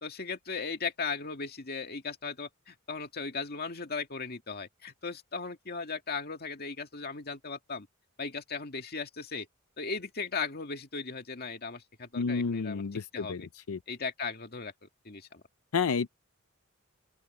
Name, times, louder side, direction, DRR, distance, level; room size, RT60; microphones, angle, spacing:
voice 1, 0.0-7.9 8.2-9.5 9.8-13.5 13.9-15.4, left 4 dB, 50° left, 2.2 m, -37 dB
voice 2, 12.1-13.8 15.7-16.1, left 5 dB, 80° left, 0.5 m, -30 dB
open air
head